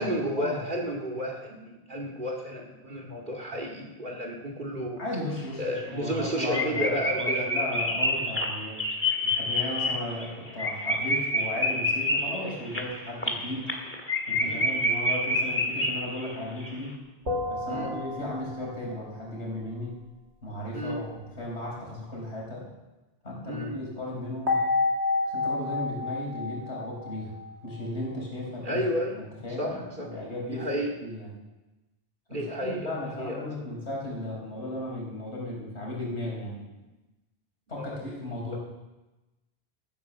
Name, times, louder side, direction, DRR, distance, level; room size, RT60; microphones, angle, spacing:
voice 1, 0.0-5.0 5.6-7.5 9.6-9.7 14.4-14.6 17.7-17.9 20.7-21.0 23.5-23.8 28.6-29.2 29.6-30.1 30.5-30.9 32.3-33.5 37.8-38.0, equal, 45° right, 0 dB, 2.3 m, -32 dB
voice 2, 5.0-8.8 9.4-13.7 14.3-16.9 17.5-20.0 20.4-22.7 23.2-24.6 25.2-27.3 27.6-28.8 29.1-30.7 31.0-31.3 32.3-36.6 37.7-38.6, left 1 dB, 80° left, -3 dB, 4.9 m, -35 dB
sound 1, 5.4-5.5 5.8-5.9 6.2-6.3 6.5-16.3 16.6-16.7, left 1 dB, 10° left, 1.8 m, -28 dB
sound 2, 17.3-18.8 24.5-27.8, left 3 dB, 80° right, 2.7 m, -29 dB
14.5 x 9.4 x 7.2 m, 1.1 s
omnidirectional pair, 1.1 m